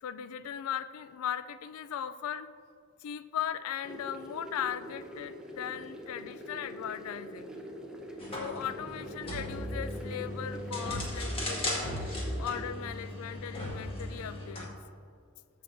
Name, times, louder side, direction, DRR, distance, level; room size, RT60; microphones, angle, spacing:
voice 1, 0.0-2.5 3.0-7.6 8.4-12.0 12.4-14.7, left 9 dB, 70° left, 12 dB, 0.3 m, -38 dB
sound 1, 3.8-12.7, equal, 5° right, 0.8 m, -44 dB
sound 2, 8.2-14.7, left 1 dB, 25° left, 1.6 m, -37 dB
14.5 x 5.9 x 2.6 m, 2.3 s
head